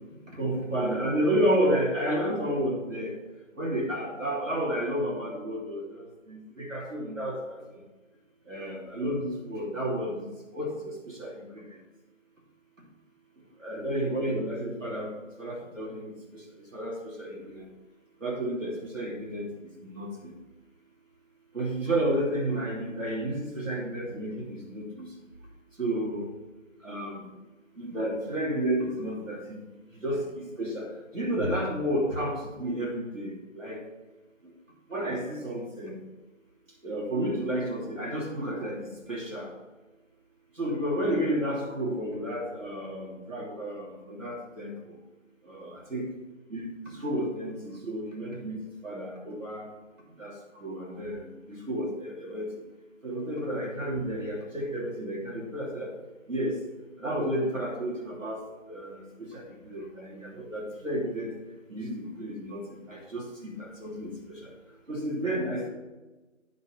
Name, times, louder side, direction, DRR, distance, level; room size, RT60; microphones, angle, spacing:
voice 1, 0.3-3.1 3.6-7.6 8.5-10.3 10.5-11.3 13.6-15.1 15.4-16.1 16.7-17.6 18.2-19.5 19.8-20.3 21.5-25.1 25.8-26.3 26.8-27.2 27.8-29.4 30.0-30.9 31.1-33.8 34.9-36.0 36.8-39.5 40.6-44.7 45.5-46.0 46.5-49.6 50.2-50.3 50.6-52.5 53.0-55.9 56.3-56.6 57.0-58.4 58.7-59.0 59.3-61.3 61.7-62.6 62.9-64.1 64.4-64.5 64.9-65.7, right 1 dB, 70° right, -3 dB, 3.1 m, -31 dB
9.9 x 4.4 x 5.8 m, 1.2 s
figure-of-eight pair, 180°, 40 cm